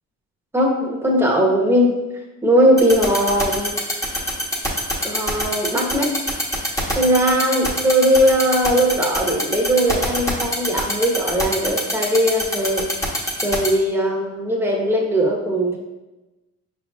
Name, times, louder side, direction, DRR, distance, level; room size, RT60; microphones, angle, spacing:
voice 1, 0.5-1.9 2.4-3.8 5.0-6.1 6.9-12.9 13.4-15.8, equal, 10° right, -1 dB, 1.1 m, -19 dB
sound 1, 2.8-13.7, equal, 10° left, 1.1 m, -22 dB
5.1 x 4.2 x 2.4 m, 1.1 s
cardioid pair, 90°, 30 cm